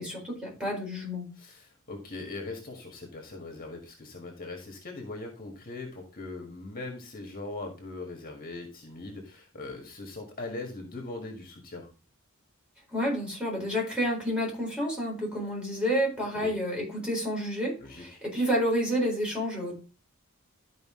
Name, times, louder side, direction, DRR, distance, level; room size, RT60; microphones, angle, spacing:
voice 1, 0.0-1.3 12.9-19.8, equal, 5° right, -3 dB, 4.1 m, -29 dB
voice 2, 1.4-11.9 16.3-16.5 17.8-18.2, left 2 dB, 40° left, 2 dB, 1.8 m, -40 dB
12.0 x 5.2 x 3.7 m, 0.33 s
head